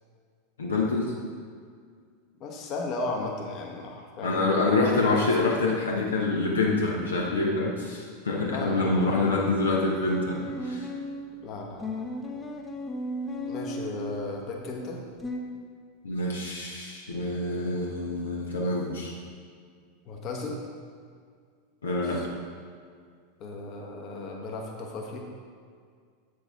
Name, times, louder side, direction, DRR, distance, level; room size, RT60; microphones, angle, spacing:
voice 1, 0.6-1.2 4.2-10.9 16.0-19.1 21.8-22.3, left 3 dB, 75° left, -1 dB, 0.9 m, -26 dB
voice 2, 2.4-4.5 5.4-5.5 8.5-9.4 11.4-12.0 13.5-15.0 20.1-20.6 22.1-22.2 23.4-25.2, left 2 dB, 40° left, 0 dB, 1.2 m, -35 dB
sound 1, 8.9-11.3 11.8-14.3 15.2-15.4, left 1 dB, 15° left, 0.8 m, -35 dB
8.3 x 6.4 x 3.6 m, 2.1 s
figure-of-eight pair, 85°, 0 cm